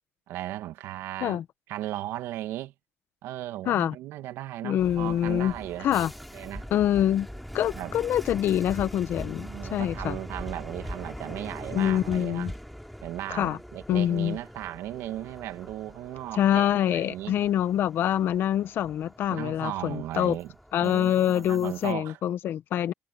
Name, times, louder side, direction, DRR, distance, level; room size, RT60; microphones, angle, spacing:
voice 1, 0.3-1.4 1.7-2.7 3.2-5.9 6.3-6.6 7.7-7.9 9.4-12.5 13.0-17.4 19.3-20.5 20.8-22.2, right 14 dB, 70° right, 1.8 m, -36 dB
voice 2, 4.6-5.5 5.8-6.1 6.7-7.3 7.5-10.2 11.7-12.5 13.3-13.6 13.9-14.4 16.3-20.4 20.7-22.9, left 11 dB, 50° left, 1.0 m, -25 dB
sound 1, 4.8-21.9, equal, ahead, 3.7 m, -42 dB
cardioid pair, 145°, 5 cm